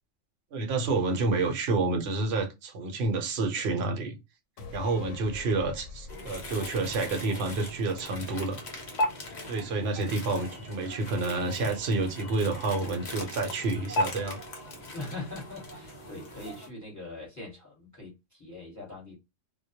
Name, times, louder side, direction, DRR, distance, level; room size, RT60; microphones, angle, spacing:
voice 1, 0.5-4.2 4.7-8.6 9.5-14.4, right 3 dB, 60° right, 0.9 m, -29 dB
sound 1, 4.6-8.1 8.5-8.6, left 4 dB, 85° left, 1.0 m, -45 dB
sound 2, 6.1-16.7, left 1 dB, 45° left, 0.7 m, -37 dB
voice 2, 14.9-19.2, left 2 dB, 15° left, 1.0 m, -42 dB
2.2 x 2.1 x 2.7 m
omnidirectional pair, 1.3 m